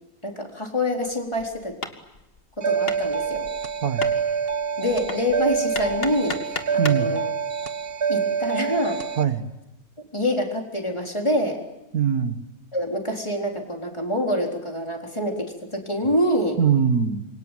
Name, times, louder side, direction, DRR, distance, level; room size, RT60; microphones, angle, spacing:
voice 1, 0.2-1.8 2.6-3.5 4.8-6.4 6.7-7.3 8.1-9.0 10.0-11.6 12.7-16.6, left 1 dB, 20° left, 1 dB, 4.1 m, -26 dB
Hammer, 1.1-7.1, left 3 dB, 40° left, 2.1 m, -36 dB
sound 1, 2.6-9.2, right 6 dB, 45° right, 1.3 m, -26 dB
voice 2, 6.8-7.1 9.2-9.5 11.9-12.4 16.6-17.3, right 7 dB, 85° right, 9 dB, 2.2 m, -22 dB
27.5 x 24.0 x 9.2 m, 0.92 s
omnidirectional pair, 1.5 m